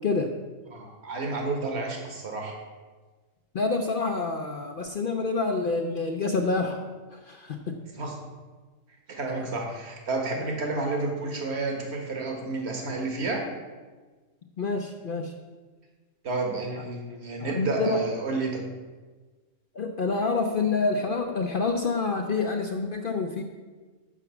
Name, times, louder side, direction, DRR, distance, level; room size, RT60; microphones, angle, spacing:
voice 1, 0.7-2.6 7.9-8.1 9.1-13.4 16.2-18.6, right 3 dB, 50° right, 1 dB, 1.7 m, -30 dB
voice 2, 3.5-6.8 7.1-7.8 14.6-15.3 17.4-18.0 19.7-23.4, left 3 dB, 55° left, 4 dB, 0.6 m, -27 dB
7.1 x 5.9 x 7.0 m, 1.3 s
omnidirectional pair, 1.5 m